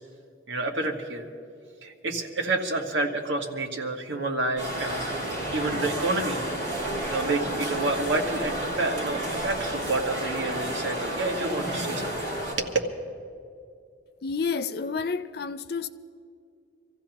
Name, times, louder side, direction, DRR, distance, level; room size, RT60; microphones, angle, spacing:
voice 1, 0.5-1.2 1.8-6.4 7.1-12.7, right 2 dB, 75° right, 1.5 m, -29 dB
sound 1, 4.6-12.5, right 1 dB, 40° right, 5.0 m, -31 dB
voice 2, 14.2-15.9, left 5 dB, 55° left, 0.4 m, -30 dB
26.0 x 15.0 x 3.0 m
head